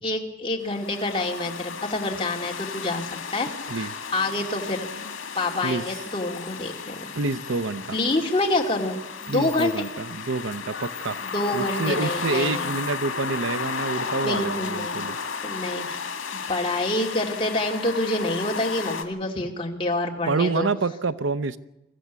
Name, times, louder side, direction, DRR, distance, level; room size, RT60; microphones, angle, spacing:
voice 1, 0.0-4.9 5.3-7.1 7.9-9.9 11.2-12.7 14.2-15.0 15.4-20.7, left 2 dB, 25° left, 1 dB, 2.5 m, -27 dB
sound 1, 0.7-19.0, left 5 dB, 80° left, 2.3 m, -34 dB
voice 2, 7.2-7.9 9.3-11.2 11.5-15.2 20.3-21.6, right 3 dB, 70° right, 14 dB, 0.7 m, -27 dB
24.0 x 15.0 x 8.2 m, 0.92 s
head